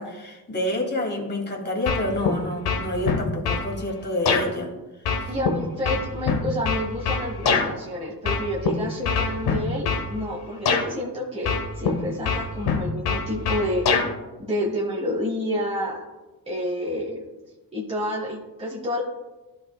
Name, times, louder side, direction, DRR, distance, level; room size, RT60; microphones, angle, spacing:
voice 1, 0.0-4.7 5.2-5.3, left 1 dB, 25° left, 0 dB, 2.2 m, -28 dB
sound 1, 1.9-2.4 2.6-3.7 4.3-4.4 5.1-7.7 8.2-8.7 9.0-10.1 10.7-10.8 11.5-11.9 12.2-14.1, left 5 dB, 75° left, 1.2 m, -23 dB
voice 2, 5.3-13.8 14.4-16.0 16.5-17.2 17.7-19.0, equal, 15° right, -3 dB, 1.5 m, -29 dB
11.5 x 5.3 x 2.2 m, 1.1 s
supercardioid pair, 65°, 39 cm